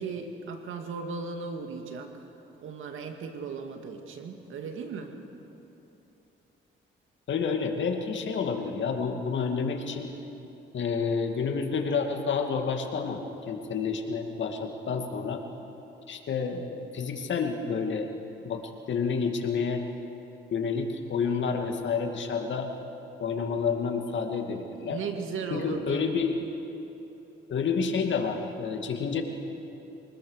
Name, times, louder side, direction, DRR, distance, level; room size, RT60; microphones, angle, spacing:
voice 1, 0.0-2.1 2.6-5.1 24.8-26.1, right 4 dB, 80° right, 5 dB, 2.1 m, -36 dB
voice 2, 7.3-10.1 10.7-15.4 16.1-18.1 18.4-18.6 18.9-19.8 20.5-22.7 23.2-25.0 25.5-26.4 27.5-29.2, left 5 dB, 65° left, 4 dB, 2.5 m, -29 dB
24.5 x 19.5 x 6.6 m, 3.0 s
cardioid pair, 75°, 21 cm